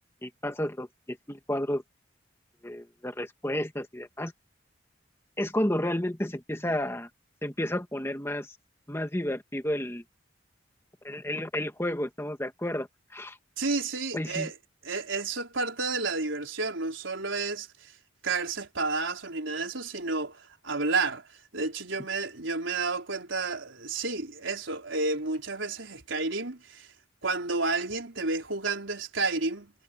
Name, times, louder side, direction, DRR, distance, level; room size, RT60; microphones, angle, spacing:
voice 1, 0.2-1.8 2.6-4.3 5.4-7.1 7.4-8.5 8.9-10.0 11.0-12.9 13.1-13.4 14.1-14.5, left 1 dB, 15° left, 1.8 m, -31 dB
voice 2, 13.6-14.5 14.8-17.9 18.2-21.2 21.5-26.9 27.2-29.7, right 3 dB, 90° right, 4.1 m, -31 dB
head